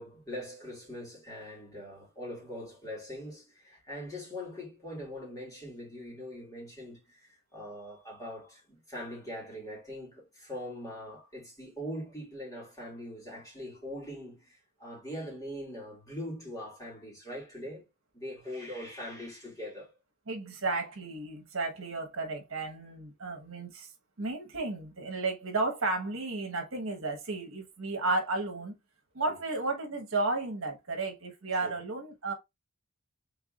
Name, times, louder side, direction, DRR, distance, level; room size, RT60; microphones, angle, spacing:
voice 1, 0.0-17.8 18.1-19.9 29.2-29.4 31.6-31.8, equal, 15° left, 2.4 m, -42 dB
voice 2, 20.3-23.9 24.2-28.7 29.1-32.3, right 3 dB, 75° right, 1.3 m, -33 dB
4.7 x 3.6 x 2.4 m
head